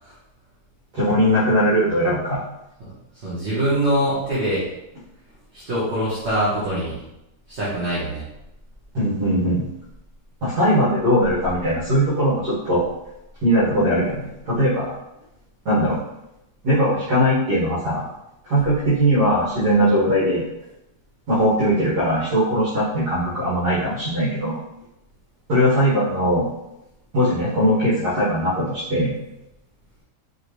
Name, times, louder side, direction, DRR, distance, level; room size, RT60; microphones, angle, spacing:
voice 1, 0.9-2.4 8.9-9.7 10.4-12.8 13.4-14.9 15.7-16.0 16.6-18.0 18.4-20.4 21.3-24.6 25.5-26.5 27.1-29.1, equal, 70° right, -11 dB, 2.1 m, -20 dB
voice 2, 3.2-4.7 5.5-7.0 7.5-8.3, right 1 dB, 40° right, -9 dB, 1.5 m, -23 dB
4.9 x 3.1 x 3.2 m, 0.88 s
omnidirectional pair, 1.8 m